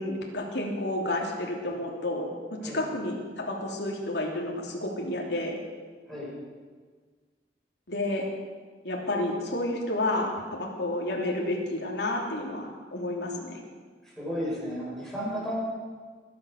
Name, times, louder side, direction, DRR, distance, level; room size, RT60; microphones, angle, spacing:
voice 1, 0.0-2.4 2.6-5.6 7.9-8.3 8.8-13.6, left 1 dB, 75° left, -1 dB, 3.3 m, -30 dB
voice 2, 14.0-15.5, equal, ahead, -6 dB, 6.1 m, -33 dB
21.0 x 9.9 x 6.6 m, 1.5 s
head